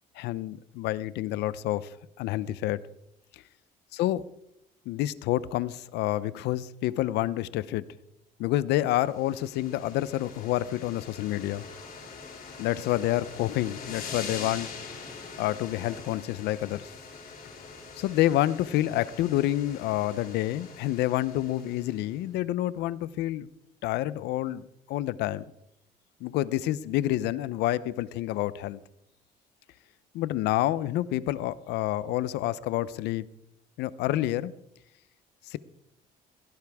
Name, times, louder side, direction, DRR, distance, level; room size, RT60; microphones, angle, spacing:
voice 1, 0.2-2.8 3.3-3.4 3.9-4.2 4.9-7.8 8.4-11.7 12.6-14.7 15.4-16.9 18.0-23.5 23.8-25.4 26.2-28.8 30.1-33.2 33.8-34.5 35.5-35.6, left 14 dB, 85° left, 0.7 m, -28 dB
sound 1, 8.9-22.2, left 5 dB, 55° left, 6.2 m, -43 dB
17.0 x 16.0 x 3.6 m
cardioid pair, 110°, 17 cm